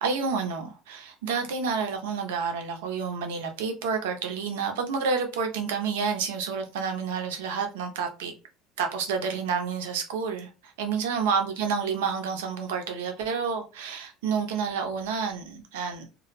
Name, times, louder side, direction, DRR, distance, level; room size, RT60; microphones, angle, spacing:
voice 1, 0.0-8.3 8.8-16.0, right 5 dB, 85° right, 0.6 m, -29 dB
2.2 x 2.0 x 3.1 m
hypercardioid pair, 80°, 0 cm